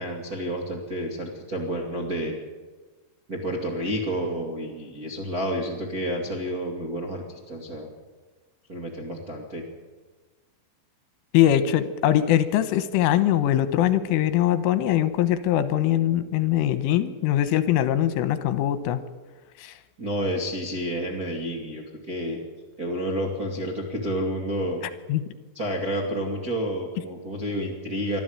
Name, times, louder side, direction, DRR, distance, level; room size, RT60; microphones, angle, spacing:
voice 1, 0.0-2.3 3.3-7.9 8.7-9.6 20.0-22.4 22.8-24.8 25.5-28.2, equal, 30° right, 0 dB, 1.6 m, -30 dB
voice 2, 11.3-19.0 19.6-19.7 25.1-25.2, left 12 dB, 80° left, 12 dB, 3.5 m, -22 dB
24.5 x 13.5 x 8.9 m, 1.3 s
omnidirectional pair, 5.8 m